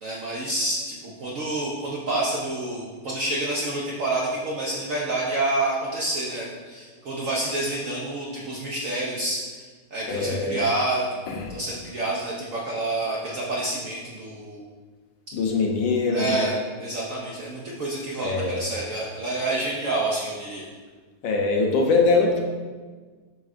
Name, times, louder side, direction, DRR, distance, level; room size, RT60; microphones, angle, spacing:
voice 1, 0.0-11.1 11.5-14.6 16.1-16.5 16.8-20.6, right 2 dB, 60° right, -4 dB, 0.8 m, -28 dB
voice 2, 10.1-10.6 11.3-11.5 15.3-16.5 18.2-18.6 21.2-22.4, left 3 dB, 75° left, 1 dB, 1.5 m, -23 dB
7.7 x 4.9 x 2.5 m, 1.4 s
omnidirectional pair, 2.2 m